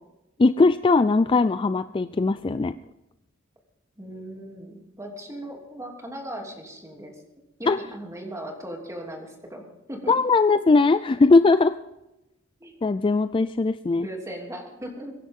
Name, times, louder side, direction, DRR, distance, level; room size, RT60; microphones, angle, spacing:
voice 1, 0.4-2.7 7.7-7.8 10.1-11.8 12.8-14.1, left 3 dB, 25° left, 12 dB, 0.4 m, -20 dB
voice 2, 4.0-7.2 7.6-10.2 12.6-12.7 14.0-15.1, right 1 dB, 15° right, 1 dB, 2.9 m, -38 dB
23.0 x 10.5 x 3.7 m, 0.94 s
head